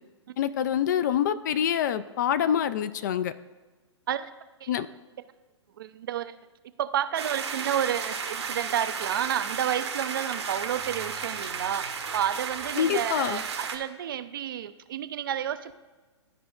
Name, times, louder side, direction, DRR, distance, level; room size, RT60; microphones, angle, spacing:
voice 1, 0.4-3.3 4.7-4.9 12.8-13.4, left 9 dB, 40° left, 13 dB, 0.4 m, -26 dB
voice 2, 5.8-6.4 6.8-15.7, right 10 dB, 50° right, 12 dB, 0.4 m, -30 dB
sound 1, 7.2-13.8, right 6 dB, 65° right, 0.9 m, -34 dB
12.5 x 5.0 x 2.4 m, 1.2 s
figure-of-eight pair, 115°, 15 cm